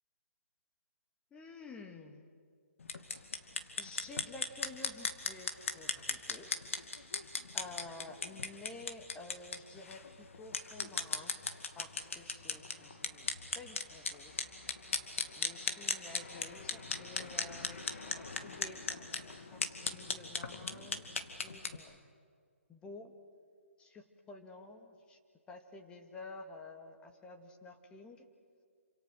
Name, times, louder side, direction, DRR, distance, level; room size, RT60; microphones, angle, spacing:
voice 1, 1.3-2.3 3.8-6.5 7.5-11.3 11.8-14.4 15.4-22.0 22.7-23.1 23.8-25.2 25.5-28.3, left 3 dB, 15° left, 5 dB, 2.2 m, -51 dB
sound 1, 2.8-21.8, left 4 dB, 70° left, 2.5 m, -38 dB
28.0 x 27.0 x 6.5 m, 2.2 s
figure-of-eight pair, 140°, 7 cm